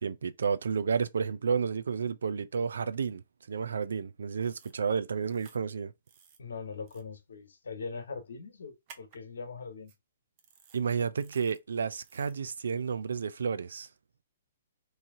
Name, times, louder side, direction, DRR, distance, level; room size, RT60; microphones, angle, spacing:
voice 1, 0.0-3.2 3.5-5.9 10.7-13.9, right 6 dB, 80° right, 0.5 m, -31 dB
sound 1, 4.4-4.8 5.3-5.6 6.1-6.4 6.9-7.0 8.9-9.2 9.9-10.0 10.4-10.8 11.2-11.6 12.0-12.4, right 7 dB, 40° right, 0.7 m, -55 dB
voice 2, 6.4-9.9, left 4 dB, 80° left, 1.1 m, -41 dB
3.1 x 2.7 x 3.7 m
hypercardioid pair, 135°, 0 cm